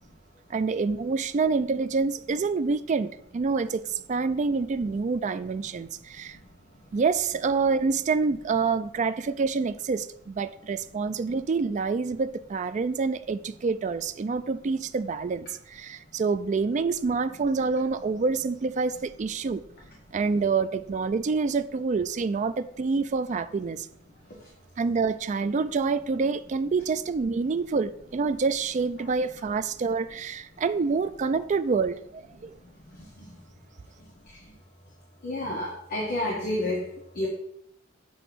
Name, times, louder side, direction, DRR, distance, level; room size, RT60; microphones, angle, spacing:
voice 1, 0.5-6.4 6.9-19.6 20.1-23.9 24.8-32.5, right 4 dB, 40° right, 13 dB, 0.3 m, -27 dB
voice 2, 35.2-36.8 37.1-37.3, left 1 dB, 50° left, -4 dB, 1.5 m, -29 dB
7.8 x 3.0 x 6.0 m, 0.75 s
head